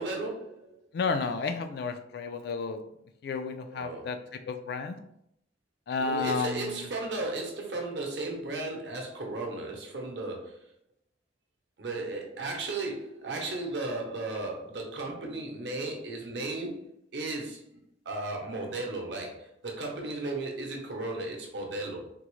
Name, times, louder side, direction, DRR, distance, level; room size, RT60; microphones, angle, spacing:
voice 1, 0.0-0.8 3.7-4.1 6.0-10.6 11.8-16.8 17.1-17.8 18.0-22.1, right 2 dB, 65° right, 1 dB, 0.7 m, -35 dB
voice 2, 0.9-2.8 3.2-4.2 4.5-5.0 5.9-6.9, left 4 dB, 60° left, 8 dB, 0.3 m, -31 dB
3.6 x 2.0 x 3.0 m, 0.76 s
head